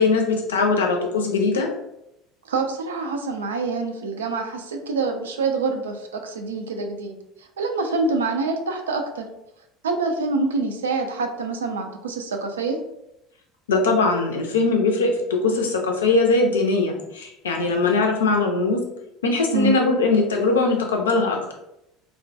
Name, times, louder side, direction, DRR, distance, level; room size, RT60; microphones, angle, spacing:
voice 1, 0.0-1.7 13.7-18.8 19.2-21.5, left 3 dB, 75° left, 2 dB, 0.4 m, -21 dB
voice 2, 2.5-9.3 9.8-12.8 19.5-19.8, right 3 dB, 75° right, 4 dB, 0.3 m, -26 dB
2.3 x 2.1 x 2.5 m, 0.84 s
figure-of-eight pair, 65°, 0 cm